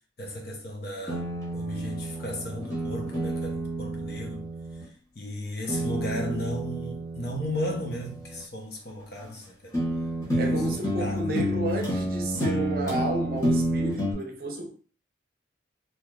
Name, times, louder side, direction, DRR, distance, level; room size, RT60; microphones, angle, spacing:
voice 1, 0.2-1.3 1.5-4.5 5.1-9.8 10.3-11.3, left 1 dB, 50° left, 0.8 m, -35 dB
sound 1, 1.1-4.8 5.7-8.4 9.2-9.3 9.7-14.1, right 1 dB, 15° left, 1.0 m, -30 dB
voice 2, 10.3-14.7, right 1 dB, 50° right, 0.7 m, -31 dB
3.2 x 2.9 x 2.3 m
head